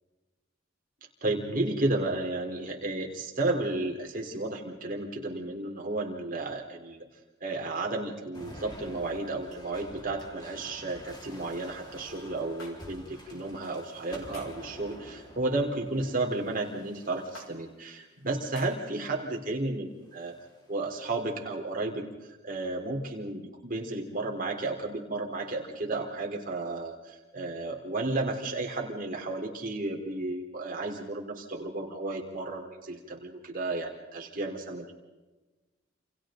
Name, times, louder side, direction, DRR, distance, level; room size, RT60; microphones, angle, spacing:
voice 1, 1.2-7.0 7.4-20.4 20.7-34.9, right 2 dB, 45° right, 0 dB, 3.9 m, -33 dB
sound 1, 8.3-17.7 18.4-18.9 20.0-20.7, equal, 20° left, 4.2 m, -49 dB
sound 2, 12.6-12.7 14.3-14.6 15.9-16.2 17.3-17.5 18.5-18.7, left 2 dB, 85° left, 5.8 m, -47 dB
29.0 x 29.0 x 3.9 m, 1.2 s
head